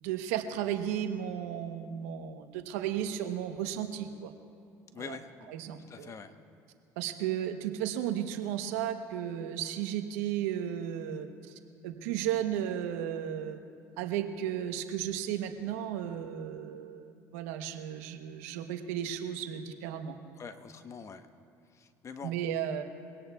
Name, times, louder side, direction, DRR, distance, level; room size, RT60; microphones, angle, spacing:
voice 1, 0.0-4.3 4.9-5.2 5.5-6.1 7.0-11.5 11.8-13.6 14.0-20.2 22.2-22.8, right 10 dB, 85° right, 7 dB, 1.0 m, -34 dB
voice 2, 4.9-5.5 5.9-6.3 20.4-21.2 21.7-22.3, left 5 dB, 40° left, 9 dB, 1.0 m, -44 dB
23.0 x 17.5 x 2.3 m, 2.5 s
supercardioid pair, 80°, 8 cm